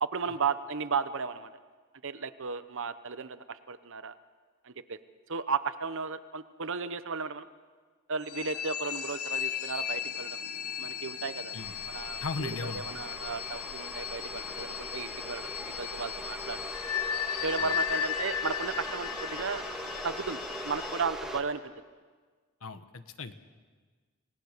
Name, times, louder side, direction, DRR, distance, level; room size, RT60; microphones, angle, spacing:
voice 1, 0.0-1.5 2.0-4.1 4.6-5.0 5.3-7.5 8.1-10.4 10.8-11.5 11.9-16.6 17.4-19.6 20.0-21.7, right 5 dB, 60° right, 12 dB, 1.0 m, -34 dB
sound 1, 8.2-21.1, left 8 dB, 85° left, 1.1 m, -36 dB
sound 2, 11.6-21.4, equal, ahead, 1.8 m, -41 dB
voice 2, 12.2-12.8 17.6-17.7 22.6-23.3, left 3 dB, 65° left, 10 dB, 1.2 m, -37 dB
28.5 x 18.5 x 6.7 m, 1.5 s
head